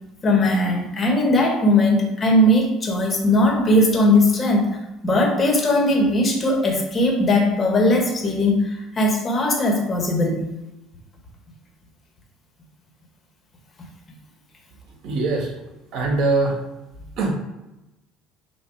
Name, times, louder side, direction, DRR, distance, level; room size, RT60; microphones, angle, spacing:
voice 1, 0.2-4.7 5.0-10.4, left 1 dB, 30° left, 0 dB, 1.7 m, -19 dB
voice 2, 15.0-15.5 15.9-16.6 17.2-17.3, right 3 dB, 65° right, 0 dB, 1.9 m, -22 dB
7.0 x 3.0 x 4.9 m, 0.96 s
cardioid pair, 125°, 0 cm